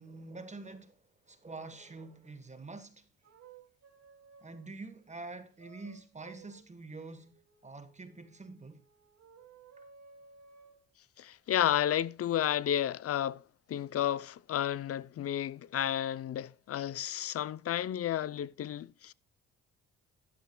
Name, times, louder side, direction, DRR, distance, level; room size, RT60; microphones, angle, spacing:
voice 1, 0.0-3.1 4.4-8.8 9.8-9.9, right 3 dB, 25° right, 1.3 m, -46 dB
sound 1, 1.7-2.3 3.2-4.8 5.6-10.8 11.6-12.0, right 5 dB, 60° right, 2.8 m, -58 dB
voice 2, 11.2-13.4 13.7-19.1, left 11 dB, 50° left, 0.6 m, -32 dB
12.0 x 12.0 x 2.3 m
cardioid pair, 90°, 30 cm